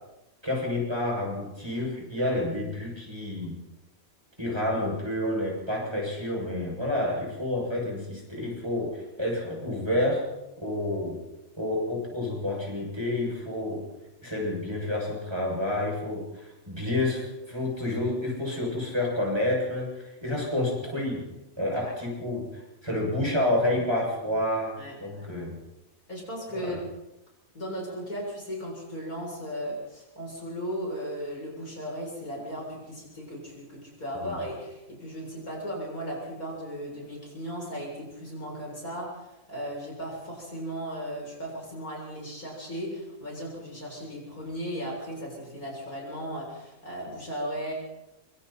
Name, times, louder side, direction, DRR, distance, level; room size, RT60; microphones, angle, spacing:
voice 1, 0.4-3.6 4.4-10.2 10.6-11.2 11.6-13.8 14.2-21.3 21.6-22.5 22.8-25.6 26.7-26.8 34.2-34.3, left 1 dB, 15° right, -2 dB, 7.3 m, -29 dB
voice 2, 24.8-25.2 26.1-26.8 27.5-47.7, equal, 90° left, -2 dB, 8.1 m, -36 dB
26.5 x 24.5 x 4.4 m, 0.95 s
omnidirectional pair, 1.5 m